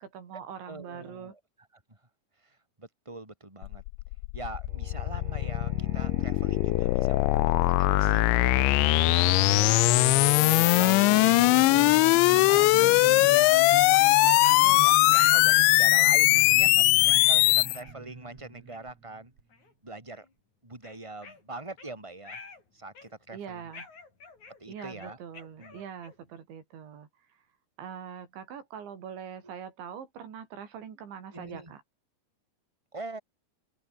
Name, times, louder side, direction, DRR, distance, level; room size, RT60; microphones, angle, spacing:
voice 1, 0.0-1.3 9.5-10.1 23.3-23.9 24.7-27.1 27.8-31.8, right 8 dB, 80° right, 6.0 m, -43 dB
voice 2, 0.7-1.4 1.9-2.0 2.4-3.8 4.3-8.7 9.6-9.8 10.5-19.3 19.8-20.3 20.6-22.4 22.7-23.6 24.6-25.2 25.6-25.8 31.3-31.7 32.9-33.2, right 2 dB, 5° right, 5.8 m, -43 dB
sound 1, 3.6-17.8, left 24 dB, 85° left, 2.9 m, -21 dB
Singing, 4.7-19.4, right 6 dB, 40° right, 3.9 m, -39 dB
sound 2, 12.8-12.9 13.7-13.9 14.4-14.6 15.1-15.7 16.3-16.6 17.0-18.0 18.7-18.8 19.5-19.7 20.1-20.3 20.8-21.9 22.2-22.6 22.9-23.3 23.7-26.3, left 4 dB, 40° left, 6.6 m, -46 dB
open air
omnidirectional pair, 5.2 m